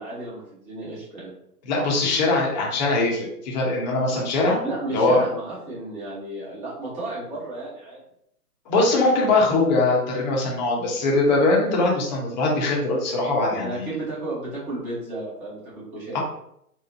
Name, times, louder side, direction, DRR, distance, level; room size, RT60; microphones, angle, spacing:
voice 1, 0.0-1.3 4.6-8.0 13.5-16.2, right 2 dB, 15° right, -7 dB, 1.0 m, -33 dB
voice 2, 1.7-4.6 4.9-5.2 8.7-13.9 16.1-16.2, left 2 dB, 30° left, -2 dB, 0.8 m, -21 dB
4.1 x 2.1 x 2.6 m, 0.73 s
hypercardioid pair, 140°, 47 cm